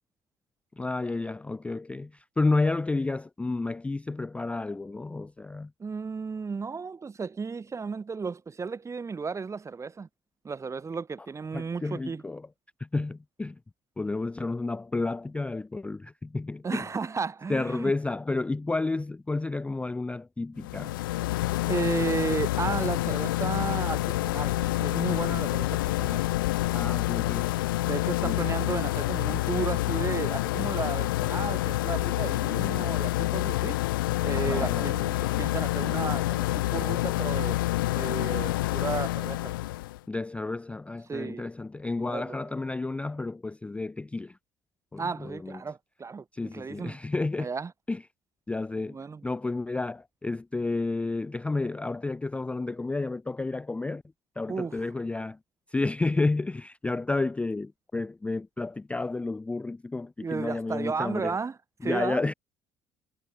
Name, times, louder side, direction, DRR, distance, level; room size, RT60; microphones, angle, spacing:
voice 1, 0.8-5.7 11.5-12.4 12.8-13.6 14.0-16.9 17.5-21.0 26.7-27.5 28.2-28.5 34.4-34.9 40.1-44.4 44.9-45.6 46.3-47.5 47.9-48.0 48.5-49.0 49.2-54.0 54.4-55.4 55.7-61.4 61.8-62.3, left 3 dB, 10° left, 0.3 m, -31 dB
voice 2, 5.8-10.1 10.4-12.2 16.6-17.9 21.7-26.2 27.8-33.8 34.2-37.6 37.9-39.5 41.1-41.5 42.0-42.4 45.0-47.0 47.4-47.7 48.9-49.2 54.5-54.8 60.2-62.2, right 5 dB, 25° right, 1.1 m, -33 dB
sound 1, 20.6-40.0, left 17 dB, 85° left, 0.7 m, -28 dB
hypercardioid pair, 65°, 11 cm